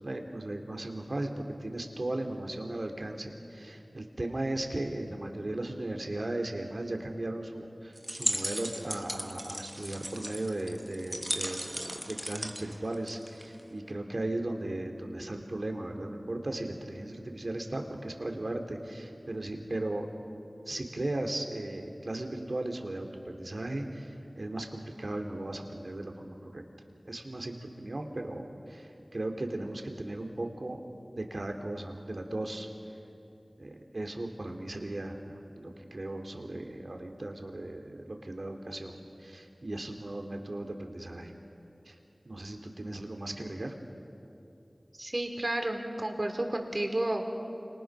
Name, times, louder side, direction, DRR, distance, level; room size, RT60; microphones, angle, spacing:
voice 1, 0.0-20.1 20.7-26.6 27.0-30.8 31.2-32.7 33.6-41.3 41.9-42.0 42.2-43.8, right 1 dB, 65° right, 4 dB, 2.7 m, -37 dB
sound 1, 8.0-13.6, equal, 5° right, 1.1 m, -37 dB
voice 2, 44.9-47.3, right 1 dB, 45° right, 4 dB, 3.1 m, -31 dB
29.0 x 27.0 x 6.1 m, 2.7 s
wide cardioid pair, 50°, 0 cm